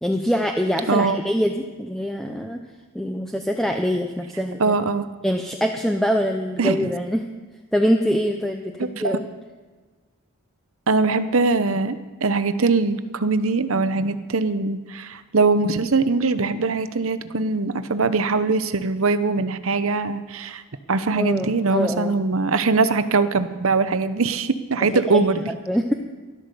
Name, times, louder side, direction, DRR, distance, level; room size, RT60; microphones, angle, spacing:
voice 1, 0.0-2.6 2.9-4.8 5.2-7.3 7.7-9.2 21.1-22.1 24.9-25.9, equal, ahead, 3 dB, 0.6 m, -24 dB
voice 2, 0.9-1.2 4.6-5.1 6.6-6.9 8.8-9.2 10.9-20.6 20.9-25.5, right 3 dB, 70° right, 11 dB, 0.8 m, -22 dB
13.0 x 12.0 x 6.9 m, 1.4 s
head